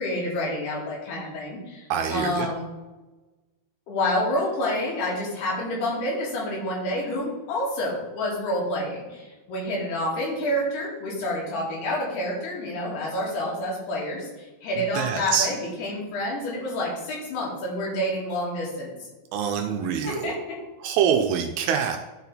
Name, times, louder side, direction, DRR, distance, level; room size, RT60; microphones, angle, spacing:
voice 1, 0.0-2.7 3.9-18.9 20.0-20.6, left 1 dB, 90° left, -4 dB, 4.2 m, -28 dB
voice 2, 1.9-2.5 15.0-15.5 19.3-20.3 20.8-22.0, right 8 dB, 80° right, 4 dB, 2.4 m, -25 dB
12.0 x 4.3 x 4.1 m, 1.1 s
omnidirectional pair, 4.5 m